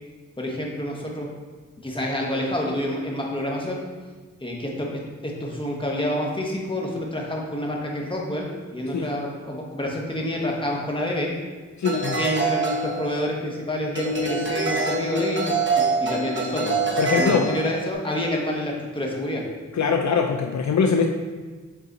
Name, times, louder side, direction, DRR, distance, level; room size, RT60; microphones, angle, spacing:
voice 1, 0.4-1.3 1.8-3.8 4.4-4.9 5.2-11.3 12.2-16.7 17.2-19.4, left 1 dB, 15° left, -2 dB, 1.2 m, -28 dB
voice 2, 11.8-12.2 17.0-17.5 19.7-21.1, left 5 dB, 65° left, 4 dB, 0.5 m, -22 dB
sound 1, 11.8-13.5 13.9-17.9, right 3 dB, 40° right, 0.9 m, -25 dB
6.9 x 3.9 x 3.9 m, 1.4 s
wide cardioid pair, 90°, 30 cm